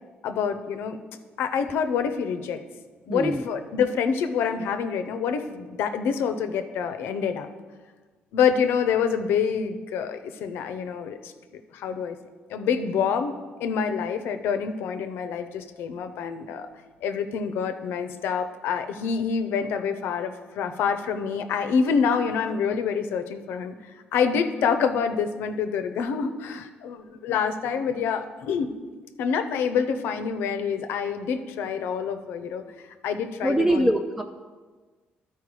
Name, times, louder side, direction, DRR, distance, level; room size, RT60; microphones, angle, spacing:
voice 1, 0.2-1.0 1.4-2.6 3.1-7.5 8.3-11.3 11.7-12.2 12.5-16.7 17.0-23.7 24.1-28.7 29.2-32.6 33.0-33.9, left 6 dB, 80° left, 8 dB, 0.6 m, -26 dB
voice 2, 3.1-3.4 33.4-34.2, right 1 dB, 5° right, 4 dB, 0.4 m, -23 dB
12.0 x 4.5 x 4.8 m, 1.4 s
cardioid pair, 100°, 4 cm